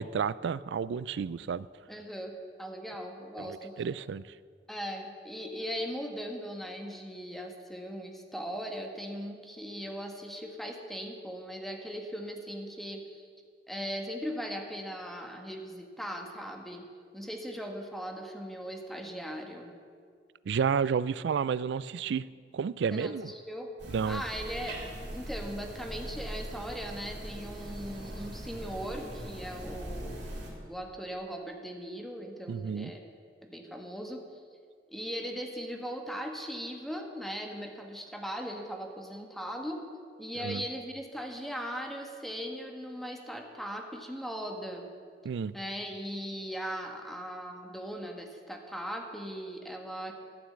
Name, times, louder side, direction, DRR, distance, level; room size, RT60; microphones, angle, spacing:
voice 1, 0.0-1.7 3.4-4.2 20.5-22.3 22.5-23.3 23.9-24.2 32.5-32.9 40.4-40.6 45.2-45.5, right 6 dB, 75° right, 18 dB, 0.3 m, -31 dB
voice 2, 1.9-3.8 4.7-13.3 13.7-16.9 17.1-19.7 22.9-23.7 24.1-24.8 25.1-30.3 30.7-33.1 33.4-34.4 34.9-39.9 40.2-44.9 45.5-50.1, equal, ahead, 2 dB, 1.2 m, -39 dB
sound 1, 23.8-30.5, right 1 dB, 90° right, 3.0 m, -41 dB
12.5 x 7.2 x 7.6 m, 2.1 s
head